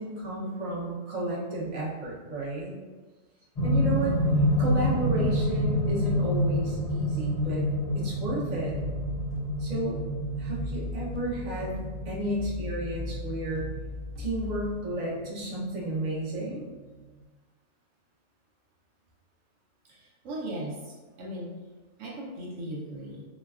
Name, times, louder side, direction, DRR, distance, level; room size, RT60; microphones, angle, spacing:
voice 1, 0.0-2.7 3.6-4.2 4.6-7.6 7.9-8.7 9.6-10.0 10.4-13.7 14.2-16.7, right 1 dB, 40° right, -5 dB, 0.7 m, -32 dB
sound 1, 3.6-15.7 16.6-16.7, left 1 dB, 50° left, 0.5 m, -28 dB
sound 2, 8.6-14.7, left 2 dB, 90° right, 1.2 m, -38 dB
voice 2, 19.8-21.6 22.0-23.3, right 1 dB, 70° right, -3 dB, 0.9 m, -38 dB
3.9 x 2.2 x 2.3 m, 1.3 s
omnidirectional pair, 1.4 m